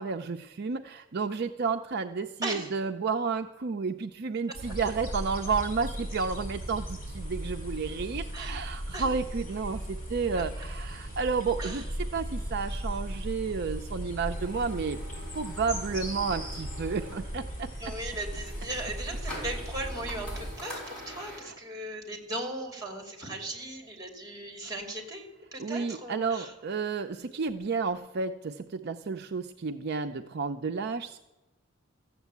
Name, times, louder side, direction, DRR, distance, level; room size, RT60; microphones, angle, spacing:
voice 1, 0.0-11.8 12.1-15.0 15.3-17.7 21.4-21.5 25.6-31.2, right 5 dB, 55° right, 7 dB, 0.5 m, -31 dB
voice 2, 2.4-2.7 8.3-8.6 8.9-9.1 11.6-11.8 17.8-26.5, right 1 dB, 20° right, 3 dB, 2.6 m, -37 dB
sound 1, 4.5-20.5, equal, 45° left, 6.5 m, -37 dB
sound 2, 14.3-21.4, left 1 dB, 5° left, 5.5 m, -45 dB
14.5 x 7.3 x 8.2 m, 1.0 s
head